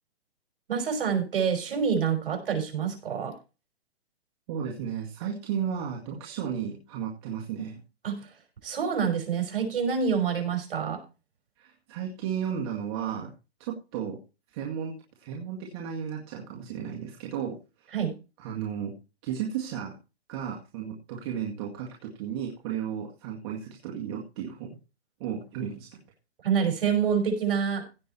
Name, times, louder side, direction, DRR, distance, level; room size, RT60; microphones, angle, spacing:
voice 1, 0.7-3.4 8.0-8.3 8.6-11.0 17.9-18.2 26.4-27.8, right 7 dB, 60° right, 5 dB, 5.5 m, -27 dB
voice 2, 4.5-7.8 11.6-13.3 13.6-14.2 14.5-17.9 18.4-18.9 19.2-19.9 20.3-24.7 25.2-25.9, right 8 dB, 25° right, -1 dB, 1.9 m, -34 dB
16.5 x 6.3 x 4.3 m, 0.30 s
hypercardioid pair, 165°, 32 cm